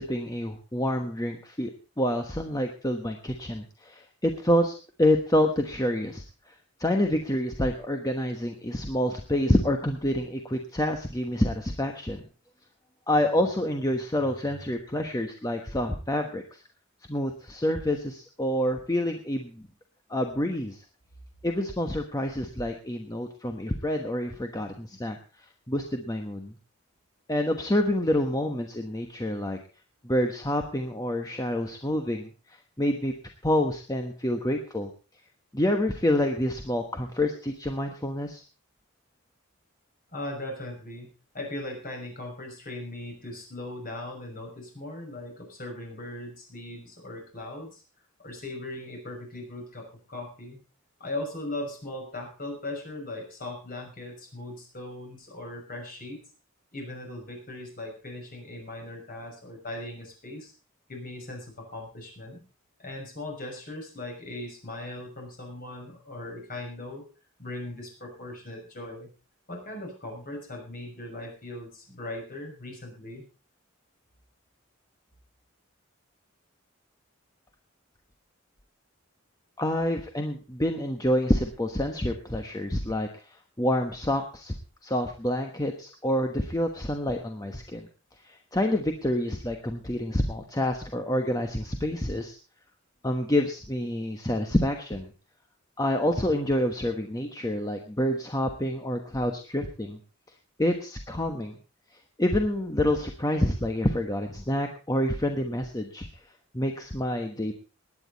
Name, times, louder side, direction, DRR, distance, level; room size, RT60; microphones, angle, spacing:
voice 1, 0.0-1.7 2.0-12.2 13.1-16.6 17.1-19.7 20.1-20.8 21.4-26.6 27.3-29.6 30.0-33.1 33.4-34.9 35.5-38.4 79.6-84.5 84.8-87.9 88.2-92.4 93.0-95.1 95.8-100.0 100.6-101.5 101.9-106.2 106.5-107.5, left 1 dB, 20° left, 4 dB, 1.2 m, -28 dB
voice 2, 40.1-41.1 41.3-47.8 48.2-50.6 51.0-56.2 56.7-60.5 60.9-62.4 62.8-67.1 67.4-69.1 69.5-73.2, left 1 dB, 45° left, 2 dB, 6.2 m, -39 dB
20.0 x 9.6 x 4.1 m, 0.36 s
head